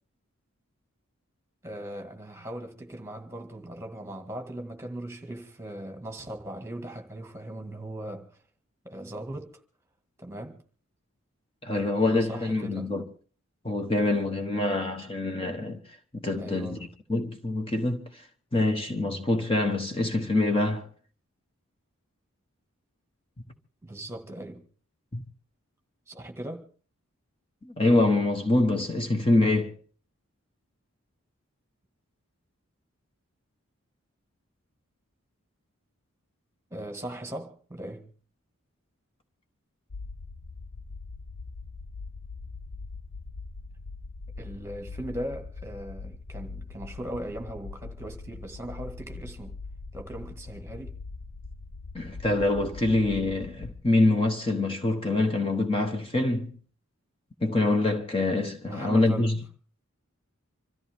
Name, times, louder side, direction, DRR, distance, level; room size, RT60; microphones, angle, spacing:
voice 1, 1.6-8.4 8.8-9.6 10.2-10.6 12.1-12.9 16.3-16.9 23.8-24.6 26.1-26.7 36.7-38.1 44.4-49.6 49.9-51.0 58.7-59.3, right 1 dB, 10° right, 1.8 m, -39 dB
voice 2, 11.6-13.0 13.6-15.8 16.1-16.8 17.1-18.3 18.5-20.9 25.1-25.2 27.6-29.7 51.9-56.5 57.4-59.4, left 2 dB, 25° left, 1.1 m, -25 dB
sound 1, 39.9-53.8, left 3 dB, 75° left, 0.8 m, -41 dB
26.0 x 14.0 x 3.6 m
head